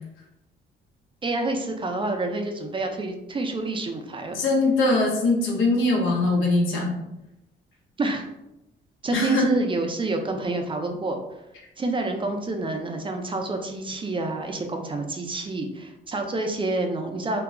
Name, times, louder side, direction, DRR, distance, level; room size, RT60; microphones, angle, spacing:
voice 1, 1.2-4.4 8.0-8.3 9.0-11.2 11.8-17.4, right 2 dB, 25° right, 4 dB, 0.4 m, -28 dB
voice 2, 4.3-7.0 9.1-9.5, left 2 dB, 85° left, -1 dB, 0.8 m, -22 dB
2.3 x 2.0 x 3.6 m, 0.88 s
cardioid pair, 90°, 20 cm